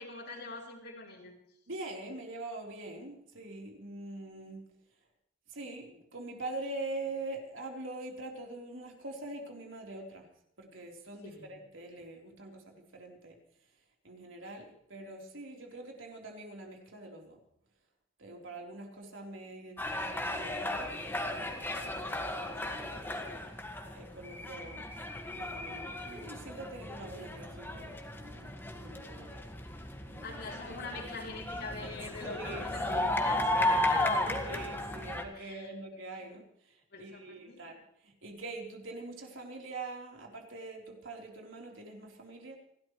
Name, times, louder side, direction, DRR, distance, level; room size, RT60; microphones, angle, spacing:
voice 1, 0.0-1.3 11.2-11.5 30.2-34.7 35.3-35.7 36.9-37.6, left 3 dB, 60° left, 1 dB, 4.4 m, -44 dB
voice 2, 1.7-4.6 5.5-10.2 10.6-13.3 14.0-17.4 18.2-23.2 23.9-24.9 25.3-29.5 30.1-30.4 31.8-31.9 32.2-33.2 34.4-42.6, right 2 dB, 85° right, 0 dB, 4.0 m, -44 dB
sound 1, 19.8-35.2, left 1 dB, 10° left, 1.8 m, -35 dB
29.0 x 12.5 x 3.3 m, 0.74 s
head